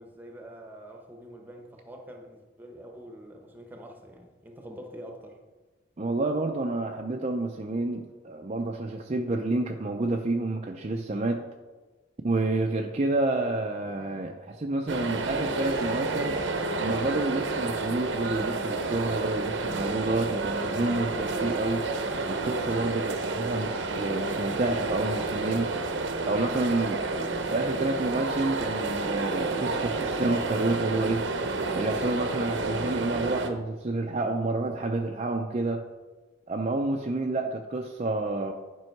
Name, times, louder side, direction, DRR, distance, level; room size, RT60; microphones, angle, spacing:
voice 1, 0.0-5.4, equal, 10° right, 3 dB, 1.0 m, -45 dB
voice 2, 6.0-11.4 12.2-16.3 16.8-21.9 22.3-25.7 26.2-27.0 27.5-31.3 31.7-35.8 36.5-38.5, right 2 dB, 35° right, 3 dB, 0.5 m, -29 dB
sound 1, 14.9-33.5, right 3 dB, 70° right, 0.8 m, -30 dB
10.5 x 5.4 x 4.6 m, 1.2 s
head